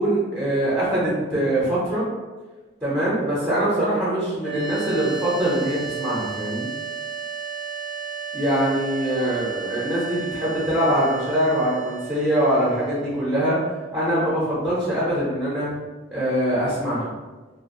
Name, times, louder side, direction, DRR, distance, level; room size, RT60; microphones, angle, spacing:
voice 1, 0.0-2.1 2.8-6.7 8.3-13.6 13.9-15.7 16.1-17.1, right 1 dB, 10° right, -9 dB, 0.7 m, -23 dB
sound 1, 4.4-15.5, right 7 dB, 50° left, 0.8 m, -34 dB
2.5 x 2.2 x 2.7 m, 1.3 s
head